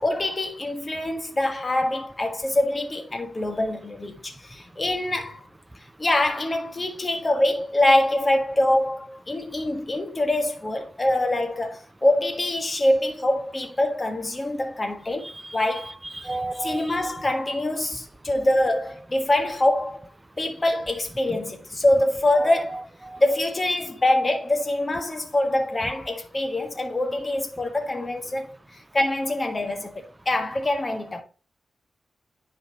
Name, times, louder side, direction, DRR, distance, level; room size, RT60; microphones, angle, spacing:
voice 1, 0.0-5.4 5.8-16.0 16.6-20.0 20.4-22.9 23.2-31.2, left 1 dB, 30° left, 1.4 m, -24 dB
voice 2, 15.7-17.3 22.4-22.8 23.1-23.2, right 2 dB, 20° right, 0.4 m, -33 dB
10.0 x 4.2 x 2.9 m
wide cardioid pair, 95°, 0 cm